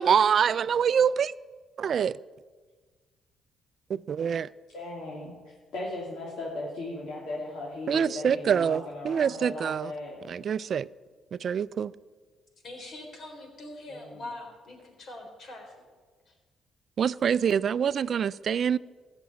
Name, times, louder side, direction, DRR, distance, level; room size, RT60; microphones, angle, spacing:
voice 1, 0.0-1.3 1.8-2.1 3.9-4.5 7.9-9.9 10.3-10.9 11.4-11.9 17.0-18.8, right 7 dB, 55° right, 0.3 m, -25 dB
voice 2, 4.7-5.3 5.7-10.2 13.9-14.3, left 2 dB, 75° left, 3.0 m, -37 dB
voice 3, 12.6-15.7 16.3-16.4, left 2 dB, 60° left, 3.7 m, -43 dB
14.5 x 6.0 x 9.4 m
cardioid pair, 90°, 0 cm